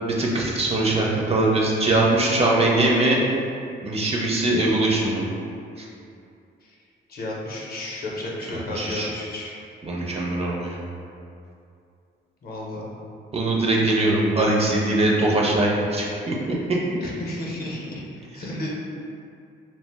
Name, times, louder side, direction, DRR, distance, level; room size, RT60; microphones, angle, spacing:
voice 1, 0.0-3.2 3.8-5.2 5.8-5.9 8.5-9.1 9.8-10.8 13.3-16.8, right 2 dB, 30° right, -3 dB, 0.5 m, -22 dB
voice 2, 7.1-9.6 12.4-13.0 17.0-18.7, left 1 dB, 50° left, -3 dB, 0.6 m, -32 dB
2.4 x 2.0 x 3.3 m, 2.5 s
cardioid pair, 90°, 20 cm